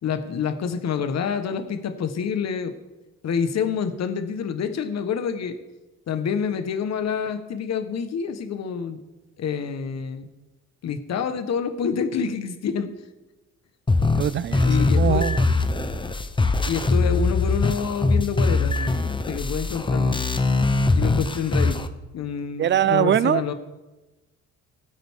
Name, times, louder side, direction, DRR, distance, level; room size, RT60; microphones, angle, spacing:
voice 1, 0.0-2.7 3.2-5.6 6.1-9.0 9.4-10.3 10.8-12.9 14.7-15.3 16.7-20.1 20.9-21.8 22.1-23.5, left 6 dB, 60° left, 9 dB, 1.2 m, -27 dB
sound 1, 13.9-21.9, left 3 dB, 15° left, 0.8 m, -22 dB
voice 2, 14.2-15.4 22.6-23.4, right 10 dB, 40° right, 19 dB, 0.5 m, -22 dB
16.5 x 9.1 x 3.6 m, 1.1 s
cardioid pair, 90°, 30 cm